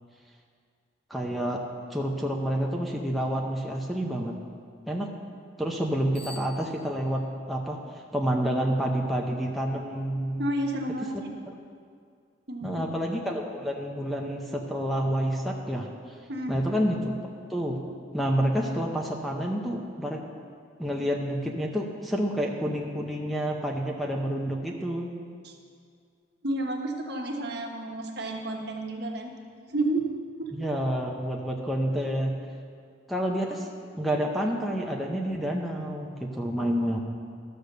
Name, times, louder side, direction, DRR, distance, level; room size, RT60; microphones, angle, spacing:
voice 1, 1.1-1.6 1.9-4.3 4.9-5.1 5.6-10.5 11.1-11.3 12.6-15.9 16.5-17.2 17.5-17.8 18.1-20.2 20.8-25.1 30.5-32.3 33.1-33.7 34.0-37.0, equal, ahead, -1 dB, 0.8 m, -29 dB
Bicycle bell, 6.1-7.4, left 1 dB, 30° left, 2.9 m, -47 dB
voice 2, 10.4-11.4 12.5-12.9 16.3-16.6 25.4-25.6 26.4-29.3 29.7-30.0 30.4-30.5, right 1 dB, 55° right, 1 dB, 1.3 m, -31 dB
13.0 x 6.7 x 6.7 m, 2.2 s
head